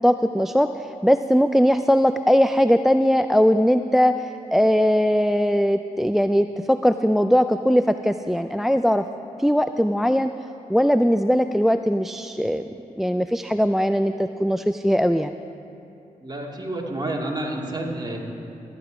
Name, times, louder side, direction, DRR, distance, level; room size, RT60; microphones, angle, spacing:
voice 1, 0.0-9.1 9.4-10.3 10.7-12.6 13.0-15.3, equal, ahead, 10 dB, 0.4 m, -20 dB
voice 2, 16.2-18.2, right 1 dB, 30° right, -1 dB, 2.4 m, -29 dB
13.5 x 9.9 x 5.0 m, 2.8 s
supercardioid pair, 45°, 15 cm